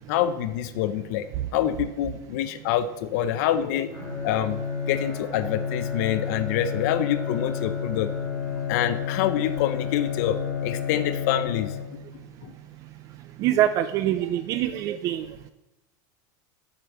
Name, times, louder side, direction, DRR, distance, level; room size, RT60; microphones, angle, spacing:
voice 1, 0.1-1.2 1.5-4.0 4.2-4.6 4.9-8.1 8.7-11.7 12.4-12.5, left 11 dB, 60° left, 12 dB, 0.6 m, -26 dB
Bowed string instrument, 3.9-12.2, left 7 dB, 15° left, 3.2 m, -31 dB
voice 2, 13.4-15.3, right 12 dB, 35° right, 12 dB, 0.3 m, -24 dB
7.4 x 5.1 x 7.0 m, 0.95 s
supercardioid pair, 170°, 10 cm